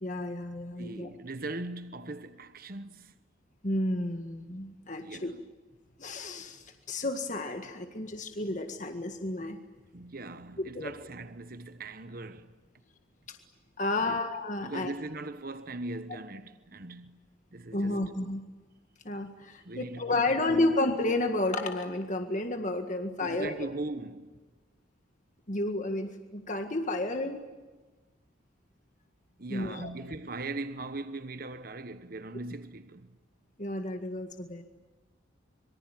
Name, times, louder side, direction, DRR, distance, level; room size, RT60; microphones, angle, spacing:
voice 1, 0.0-1.1 3.6-5.3 6.0-9.6 10.8-10.9 13.3-13.4 13.8-14.9 17.7-18.4 19.1-23.7 25.5-27.4 29.5-29.9 33.6-34.6, left 2 dB, 40° left, 1.8 m, -31 dB
voice 2, 0.8-3.1 5.0-5.5 9.9-12.5 14.0-14.2 14.6-17.2 17.5-18.0 19.6-20.7 23.2-24.4 29.4-33.1, right 2 dB, 45° right, 1.2 m, -40 dB
26.0 x 23.5 x 9.2 m
head